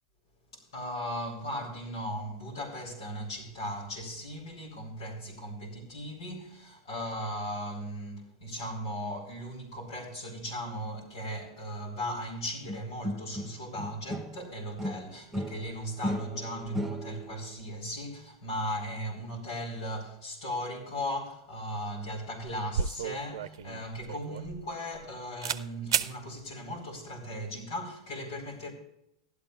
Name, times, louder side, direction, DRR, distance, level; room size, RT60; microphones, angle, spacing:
voice 1, 0.5-28.7, equal, 85° left, 3.0 m, -37 dB
sound 1, 12.7-14.5 14.8-17.4, equal, 5° right, 1.0 m, -36 dB
sound 2, 22.0-22.2 22.4-25.1 25.4-25.6 25.9-26.1, right 7 dB, 85° right, 0.5 m, -32 dB
15.0 x 12.0 x 2.4 m
hypercardioid pair, 110°, 2 cm